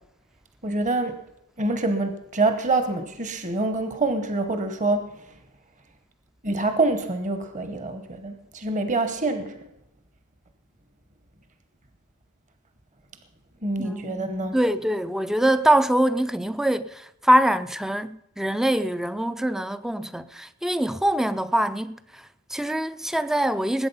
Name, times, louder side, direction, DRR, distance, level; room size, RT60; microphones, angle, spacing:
voice 1, 0.6-1.2 1.6-5.1 6.4-9.5 13.6-14.5, right 2 dB, 35° right, 1.1 m, -26 dB
voice 2, 13.8-23.9, right 1 dB, ahead, 0.4 m, -24 dB
20.5 x 8.6 x 5.5 m
head